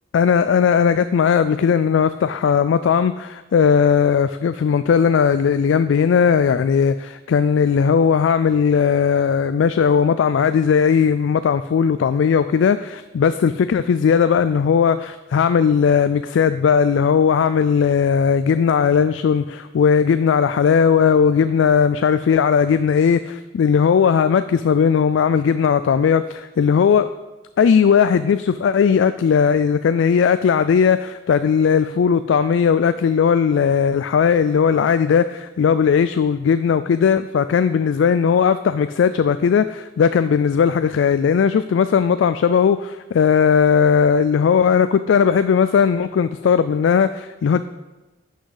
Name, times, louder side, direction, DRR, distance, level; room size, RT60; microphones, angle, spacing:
voice 1, 0.1-27.1 27.6-47.6, left 6 dB, 90° left, 12 dB, 0.3 m, -17 dB
11.0 x 6.2 x 4.0 m, 1.2 s
head